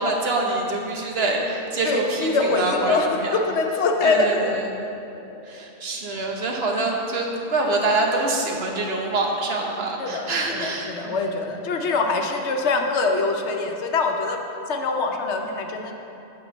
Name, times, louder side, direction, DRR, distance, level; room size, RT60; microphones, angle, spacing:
voice 1, 0.0-3.4 4.0-4.7 5.4-11.3, right 2 dB, 60° right, 0 dB, 1.2 m, -25 dB
voice 2, 1.8-4.6 5.2-5.6 10.0-14.4 14.7-15.9, left 3 dB, 75° left, 3 dB, 1.0 m, -24 dB
8.9 x 4.3 x 6.5 m, 2.8 s
omnidirectional pair, 1.2 m